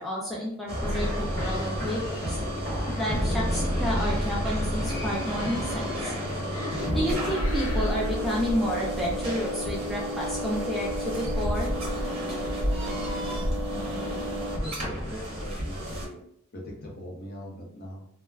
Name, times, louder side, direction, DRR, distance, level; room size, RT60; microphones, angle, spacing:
voice 1, 0.0-2.4 3.0-6.1 6.9-11.7, equal, ahead, -5 dB, 0.3 m, -31 dB
sound 1, 0.7-16.1, equal, 25° right, 0.7 m, -32 dB
sound 2, 0.8-8.4, left 1 dB, 60° left, 1.1 m, -31 dB
sound 3, 6.8-14.6, equal, 70° right, 0.4 m, -34 dB
voice 2, 14.6-16.2 16.5-18.1, left 1 dB, 45° left, -2 dB, 0.7 m, -40 dB
2.3 x 2.0 x 3.3 m, 0.71 s
head